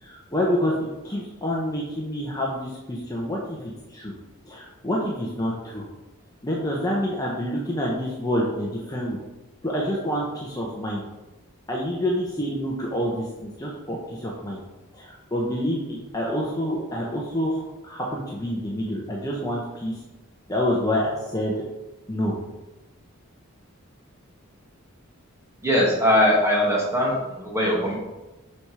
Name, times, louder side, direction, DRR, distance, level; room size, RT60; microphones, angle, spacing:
voice 1, 0.0-4.1 4.4-5.8 6.4-9.2 9.6-11.0 11.7-14.6 14.9-20.0 20.5-21.6 22.1-22.3, equal, 15° left, -4 dB, 1.1 m, -27 dB
voice 2, 25.6-28.0, equal, 15° right, -3 dB, 2.1 m, -21 dB
7.8 x 5.8 x 4.9 m, 1.1 s
head